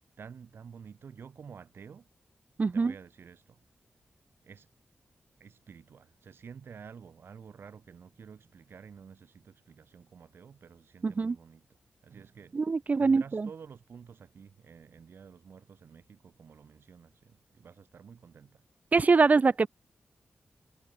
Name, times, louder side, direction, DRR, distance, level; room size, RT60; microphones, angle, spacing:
voice 1, 0.2-2.1 2.7-3.6 4.4-4.7 5.4-11.6 12.0-12.6 13.0-18.6, right 6 dB, 80° right, 5.9 m, -50 dB
voice 2, 2.6-2.9 11.0-11.4 12.5-13.5 18.9-19.7, right 4 dB, 40° right, 0.4 m, -24 dB
wide cardioid pair, 85°, 4 cm